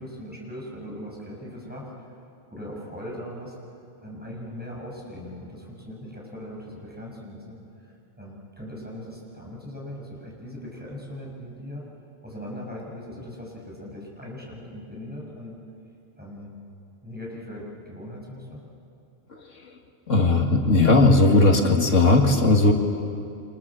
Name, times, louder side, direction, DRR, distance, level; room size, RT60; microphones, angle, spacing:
voice 1, 0.0-2.2 2.5-3.5 4.0-11.8 12.2-15.6 16.2-16.5 17.0-18.6, equal, 5° right, -4 dB, 6.9 m, -39 dB
voice 2, 20.1-22.7, left 2 dB, 80° left, 3 dB, 2.2 m, -17 dB
29.0 x 26.5 x 7.5 m, 2.6 s
omnidirectional pair, 1.3 m